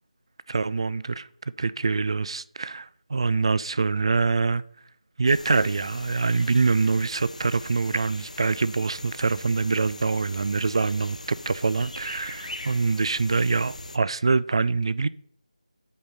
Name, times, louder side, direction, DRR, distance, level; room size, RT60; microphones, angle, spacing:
voice 1, 0.5-1.3 1.6-4.6 5.2-15.1, right 4 dB, 45° right, 0.3 m, -24 dB
sound 1, 5.3-14.0, left 2 dB, 75° left, 0.8 m, -41 dB
8.5 x 5.3 x 4.1 m
figure-of-eight pair, 165°, 4 cm